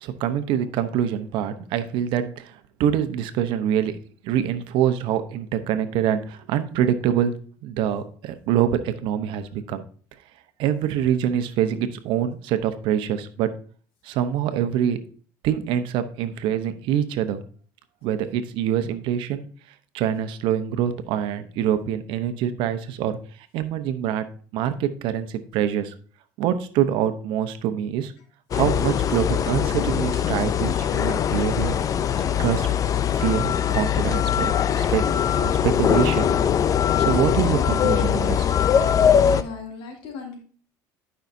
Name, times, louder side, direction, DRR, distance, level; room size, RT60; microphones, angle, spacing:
voice 1, 0.0-2.5 2.8-4.0 4.2-7.3 7.6-9.8 10.6-13.5 14.0-15.0 15.4-17.4 18.0-19.5 19.9-23.2 23.5-24.3 24.5-25.9 26.4-28.1 28.5-31.8 32.4-32.7 33.1-35.0 35.4-36.3 37.0-38.5, right 10 dB, 75° right, 10 dB, 0.9 m, -25 dB
sound 1, 28.5-39.4, left 8 dB, 40° left, 0.5 m, -21 dB
voice 2, 39.3-40.4, left 5 dB, 75° left, 0 dB, 2.6 m, -37 dB
11.5 x 5.6 x 2.7 m, 0.43 s
supercardioid pair, 95°, 9 cm